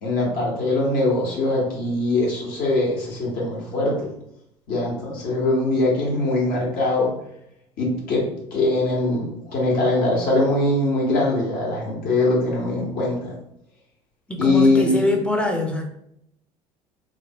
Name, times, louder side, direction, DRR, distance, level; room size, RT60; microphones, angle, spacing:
voice 1, 0.0-4.1 4.7-7.1 7.8-8.2 8.5-13.3 14.4-14.9, left 2 dB, 55° left, -3 dB, 1.5 m, -22 dB
voice 2, 14.3-15.9, left 1 dB, 5° left, 2 dB, 0.7 m, -23 dB
3.2 x 2.3 x 2.9 m, 0.76 s
hypercardioid pair, 70°, 18 cm